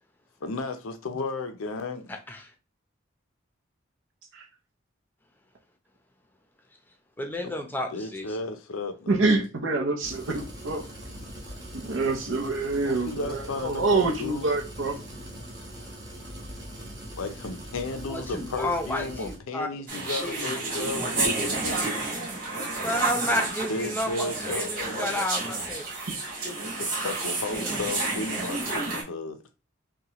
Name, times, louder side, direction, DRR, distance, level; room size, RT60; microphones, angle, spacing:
voice 1, 0.4-2.1 7.4-7.5 7.9-9.4 12.8-14.5 17.2-21.8 23.3-23.4 23.7-25.1 26.6-29.4, left 3 dB, 90° left, 0.6 m, -34 dB
voice 2, 2.1-2.5 7.2-8.4 18.1-19.8 20.2-20.5 22.8-25.8 27.5-27.8, left 1 dB, 10° left, 0.6 m, -31 dB
voice 3, 9.1-10.9 11.7-15.0, right 3 dB, 70° right, 0.7 m, -26 dB
sound 1, 10.0-19.4, equal, 20° right, 1.0 m, -41 dB
sound 2, 19.9-29.0, right 3 dB, 45° right, 1.7 m, -30 dB
5.7 x 2.3 x 2.9 m
head